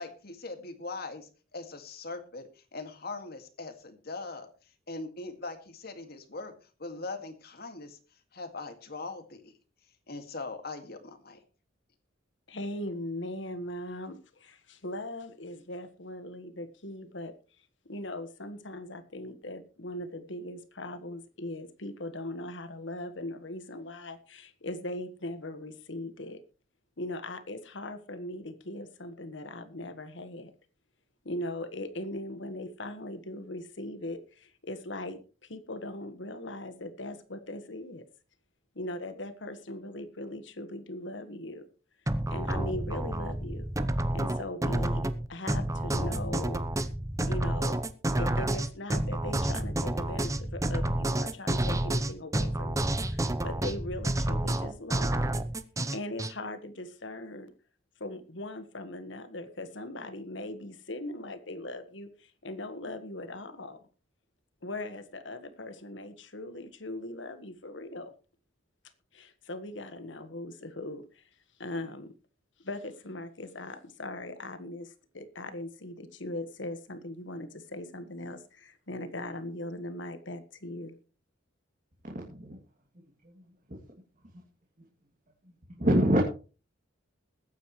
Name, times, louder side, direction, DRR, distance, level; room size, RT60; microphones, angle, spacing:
voice 1, 0.0-4.5 4.9-6.5 6.8-8.0 8.3-9.5 10.1-11.4, left 3 dB, 55° left, 7 dB, 2.2 m, -41 dB
voice 2, 12.5-17.3 17.8-26.4 27.0-30.5 31.2-38.0 38.7-41.7 42.3-43.7 44.1-46.6 47.3-47.8 48.1-55.5 55.9-57.5 58.0-63.8 64.6-68.1 69.1-71.2 71.6-72.1 72.6-81.0, left 1 dB, 75° left, 11 dB, 1.6 m, -39 dB
sound 1, 42.1-56.3, right 1 dB, 15° right, 0.8 m, -29 dB
voice 3, 82.0-82.6 83.2-83.4 85.7-86.3, equal, 45° right, -2 dB, 2.7 m, -26 dB
21.0 x 9.4 x 3.2 m, 0.35 s
head